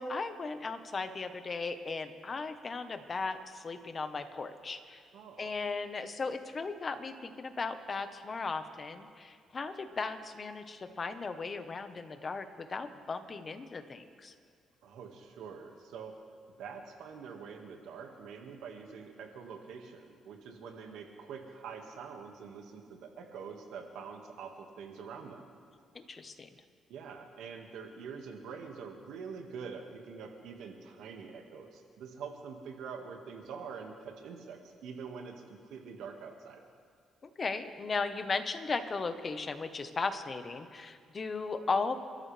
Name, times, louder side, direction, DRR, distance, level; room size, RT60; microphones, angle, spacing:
voice 1, 0.0-5.0 5.4-14.3 25.9-26.5 37.2-42.0, left 4 dB, 35° left, 8 dB, 1.2 m, -36 dB
voice 2, 5.1-5.5 14.8-16.2 16.6-25.5 26.9-36.6, right 6 dB, 85° right, 3 dB, 1.9 m, -45 dB
29.0 x 13.5 x 3.4 m, 2.1 s
cardioid pair, 90°, 0 cm